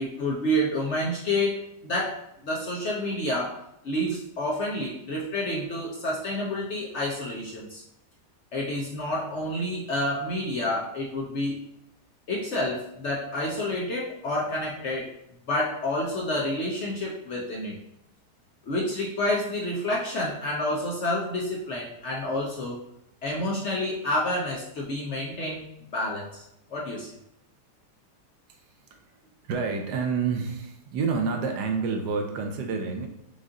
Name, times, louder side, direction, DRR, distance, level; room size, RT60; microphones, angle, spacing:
voice 1, 0.0-7.8 8.5-11.7 12.3-15.1 15.5-17.8 18.7-22.8 23.2-25.6 25.9-26.4 26.7-27.1, left 1 dB, 60° left, -3 dB, 0.8 m, -29 dB
voice 2, 29.4-33.1, right 5 dB, 80° right, 4 dB, 1.3 m, -28 dB
5.2 x 2.5 x 3.7 m, 0.81 s
omnidirectional pair, 1.8 m